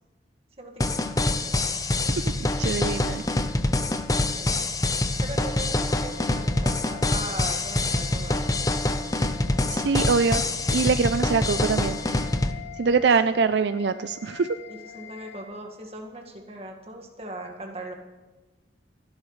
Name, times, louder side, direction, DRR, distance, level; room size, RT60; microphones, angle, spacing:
voice 1, 0.6-1.2 4.1-4.7 5.2-8.8 14.7-17.9, right 1 dB, 35° right, 2 dB, 1.8 m, -39 dB
sound 1, 0.8-12.5, left 2 dB, 20° left, 0.7 m, -25 dB
sound 2, 2.6-15.4, left 12 dB, 85° left, 2.0 m, -45 dB
voice 2, 2.6-3.2 9.7-10.4 10.7-12.3 12.7-14.6, right 5 dB, 70° right, 11 dB, 0.4 m, -24 dB
27.5 x 11.5 x 3.2 m, 1.2 s
head